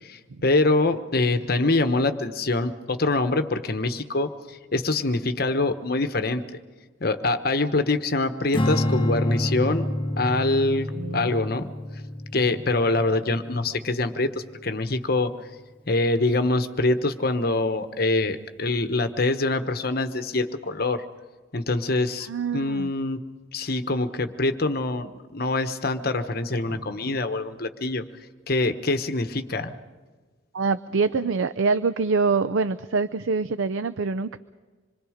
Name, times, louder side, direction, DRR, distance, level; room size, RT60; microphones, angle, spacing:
voice 1, 0.0-6.4 7.0-9.9 10.2-11.7 12.3-15.3 15.9-21.0 21.5-23.2 23.5-28.0 28.5-29.7, left 2 dB, 50° left, 9 dB, 1.1 m, -24 dB
Strum, 8.5-14.9, left 1 dB, 25° left, 1.1 m, -29 dB
voice 2, 10.9-11.3 22.3-22.9 26.7-26.8 30.5-34.4, right 4 dB, 90° right, 12 dB, 0.6 m, -25 dB
26.5 x 23.0 x 5.1 m, 1.4 s
head